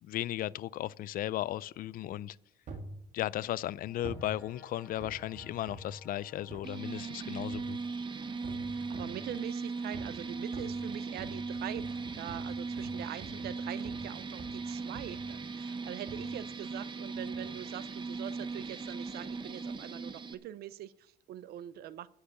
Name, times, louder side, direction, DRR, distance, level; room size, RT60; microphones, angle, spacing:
voice 1, 0.0-2.4 3.1-7.8, left 13 dB, 55° left, 0.4 m, -36 dB
sound 1, 2.7-3.0 4.0-4.3 5.0-6.0 6.5-6.7 7.5-7.9 8.4-9.2 9.9-10.2 10.5-14.1 14.4-14.6 15.0-15.3 16.1-16.3 17.1-17.5 18.1-18.2, right 2 dB, 45° right, 2.0 m, -46 dB
Brass instrument, 3.1-7.8, left 1 dB, 10° right, 3.7 m, -60 dB
sound 2, 6.6-20.3, right 4 dB, 30° right, 0.9 m, -38 dB
voice 2, 8.7-22.1, right 12 dB, 70° right, 0.5 m, -43 dB
9.9 x 6.5 x 8.1 m
cardioid pair, 110°, 17 cm